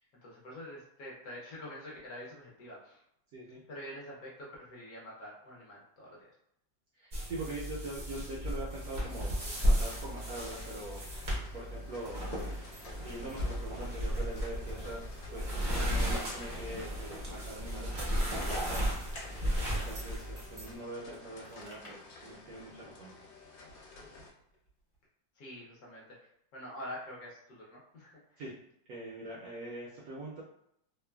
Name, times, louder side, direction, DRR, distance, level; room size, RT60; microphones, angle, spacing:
voice 1, 0.2-3.0 3.7-6.3 25.3-28.4, left 1 dB, 65° left, -4 dB, 1.1 m, -46 dB
voice 2, 6.9-9.4 9.6-11.0 11.5-12.6 12.9-15.0 15.3-19.3 19.7-23.1 28.4-28.5 28.9-30.4, right 2 dB, 75° right, -4 dB, 0.8 m, -43 dB
sound 1, 7.1-20.7, equal, 55° right, 0.5 m, -34 dB
sound 2, 8.7-24.3, left 3 dB, 85° left, 1.3 m, -53 dB
sound 3, 16.3-17.3 18.1-21.2 21.4-22.8 23.0-24.7 24.9-25.0, left 1 dB, 40° left, 0.9 m, -49 dB
3.1 x 2.1 x 2.2 m, 0.75 s
omnidirectional pair, 2.0 m